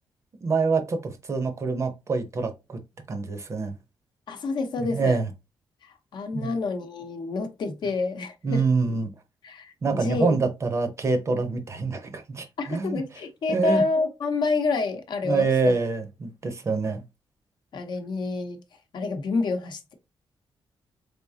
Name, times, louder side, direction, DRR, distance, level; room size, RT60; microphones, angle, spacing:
voice 1, 0.4-2.8 3.1-3.8 4.8-5.3 6.3-6.5 8.4-9.1 9.8-13.0 13.5-13.8 15.2-17.0, right 4 dB, 35° right, 0.7 m, -26 dB
voice 2, 4.3-5.2 6.1-8.6 9.4-10.4 12.6-15.7 17.7-18.6 18.9-19.9, left 3 dB, 55° left, 0.8 m, -28 dB
3.8 x 3.5 x 2.7 m
wide cardioid pair, 170°, 9 cm